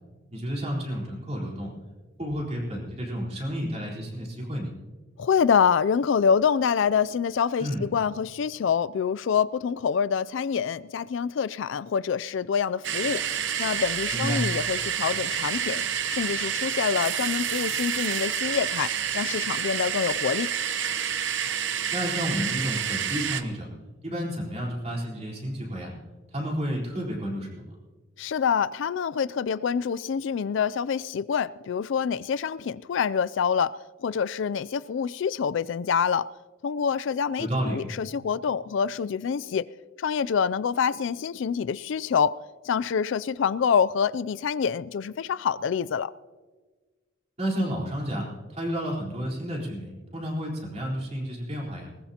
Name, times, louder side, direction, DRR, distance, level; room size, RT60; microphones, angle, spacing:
voice 1, 0.3-1.7 2.2-4.7 7.6-7.8 14.1-14.4 21.9-23.7 24.0-25.9 26.3-27.6 37.4-37.8 47.4-48.3 48.5-51.9, equal, 30° right, 4.0 m, -31 dB
voice 2, 5.2-13.2 13.6-15.8 16.1-20.5 28.2-36.3 36.6-39.6 40.0-42.4 42.6-46.1, left 7 dB, 70° left, 0.3 m, -26 dB
sound 1, 12.8-23.4, right 8 dB, 65° right, 0.8 m, -29 dB
20.5 x 19.5 x 2.9 m
head